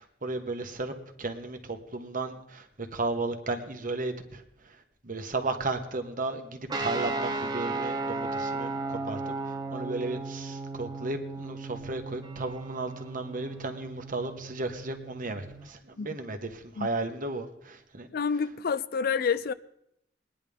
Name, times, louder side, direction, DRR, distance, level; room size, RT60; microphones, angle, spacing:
voice 1, 0.0-4.8 5.0-18.1, right 2 dB, 45° right, 1.4 m, -34 dB
sound 1, 6.7-15.7, right 3 dB, 25° right, 1.0 m, -35 dB
voice 2, 18.1-19.5, left 6 dB, 55° left, 0.4 m, -28 dB
22.5 x 10.0 x 3.6 m
head